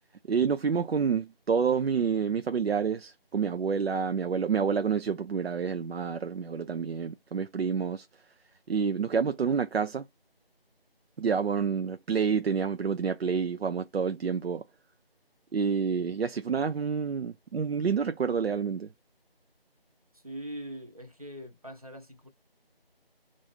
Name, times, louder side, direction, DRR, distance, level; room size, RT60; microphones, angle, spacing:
voice 1, 0.3-8.1 8.7-10.0 11.2-14.6 15.5-18.9, right 6 dB, 90° right, 0.5 m, -28 dB
voice 2, 20.2-22.3, right 1 dB, 35° right, 0.8 m, -42 dB
2.7 x 2.5 x 3.5 m
figure-of-eight pair, 170°, 30 cm